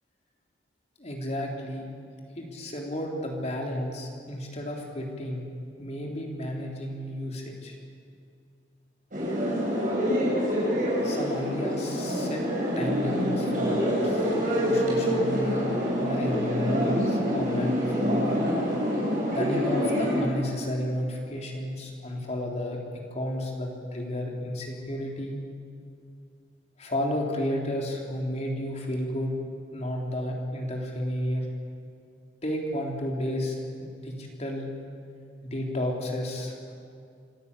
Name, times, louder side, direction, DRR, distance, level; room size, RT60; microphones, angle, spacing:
voice 1, 1.0-1.8 2.4-5.5 5.8-7.8 11.0-12.4 12.8-15.6 16.0-18.4 19.3-22.8 23.1-25.4 26.8-29.4 29.7-31.5 32.4-34.7 35.4-36.7, left 1 dB, 40° left, 0 dB, 3.6 m, -32 dB
sound 1, 9.1-20.2, equal, 50° right, 7.3 m, -26 dB
26.0 x 14.0 x 8.5 m, 2.4 s
head